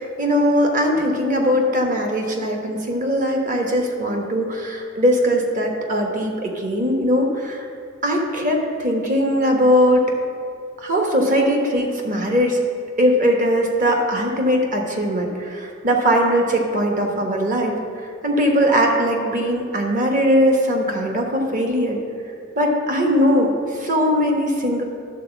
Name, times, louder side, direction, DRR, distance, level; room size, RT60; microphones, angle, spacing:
voice 1, 0.0-7.7 8.0-10.1 10.8-12.6 13.0-17.7 18.2-22.0 22.5-24.8, equal, 40° right, 1 dB, 1.2 m, -20 dB
11.0 x 4.1 x 7.0 m, 2.3 s
head